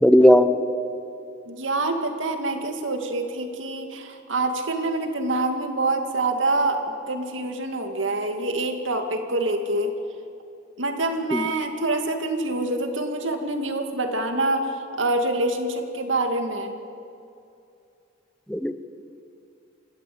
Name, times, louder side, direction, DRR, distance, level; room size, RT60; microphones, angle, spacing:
voice 1, 0.0-0.6 11.3-11.4 18.5-18.7, left 1 dB, 5° left, 10 dB, 0.8 m, -16 dB
voice 2, 1.5-6.8 7.1-9.9 10.8-16.8, right 2 dB, 85° right, 5 dB, 2.2 m, -26 dB
27.5 x 13.0 x 8.6 m, 2.6 s
head